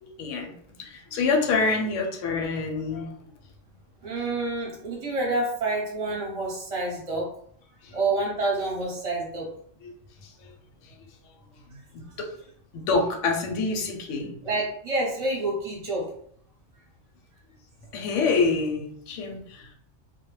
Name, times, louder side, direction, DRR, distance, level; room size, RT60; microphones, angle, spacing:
voice 1, 0.0-3.1 7.8-8.0 9.8-9.9 10.2-10.5 10.8-10.9 11.9-12.3 12.7-14.3 17.9-19.7, left 4 dB, 80° left, 1 dB, 0.9 m, -27 dB
voice 2, 4.0-7.3 7.9-9.5 14.4-16.1, right 2 dB, 35° right, -3 dB, 0.7 m, -28 dB
2.2 x 2.0 x 3.0 m, 0.64 s
omnidirectional pair, 1.3 m